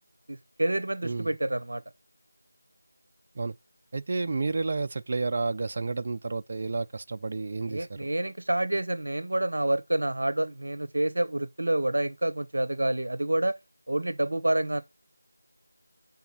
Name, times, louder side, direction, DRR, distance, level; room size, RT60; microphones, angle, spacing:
voice 1, 0.3-1.8 7.7-13.6 13.9-14.8, right 1 dB, 60° right, 0.7 m, -28 dB
voice 2, 3.9-7.9, right 3 dB, 30° right, 0.4 m, -30 dB
7.0 x 4.0 x 4.2 m
figure-of-eight pair, 170°, 0 cm